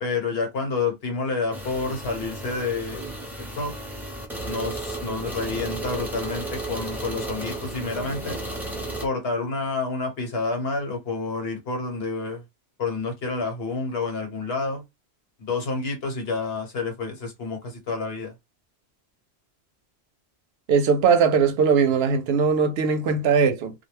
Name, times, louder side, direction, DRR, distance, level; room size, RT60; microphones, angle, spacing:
voice 1, 0.0-3.1 3.4-3.7 4.4-8.4 9.0-12.4 12.8-14.8 15.4-18.3, left 3 dB, 70° left, 1.2 m, -29 dB
sound 1, 1.5-9.1, right 1 dB, ahead, 0.6 m, -33 dB
voice 2, 20.7-23.7, right 6 dB, 75° right, 0.8 m, -20 dB
2.3 x 2.1 x 3.0 m
omnidirectional pair, 1.1 m